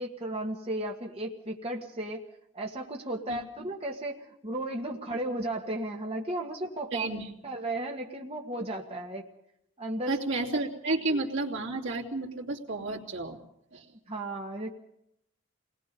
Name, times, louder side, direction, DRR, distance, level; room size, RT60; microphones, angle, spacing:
voice 1, 0.0-2.2 2.5-7.1 7.4-9.2 9.8-10.2 11.1-11.2 14.1-14.7, right 1 dB, 30° right, 0 dB, 1.9 m, -34 dB
voice 2, 6.9-7.3 10.1-13.4 13.7-13.9, right 2 dB, 75° right, -1 dB, 3.2 m, -31 dB
29.0 x 20.5 x 5.4 m, 0.75 s
head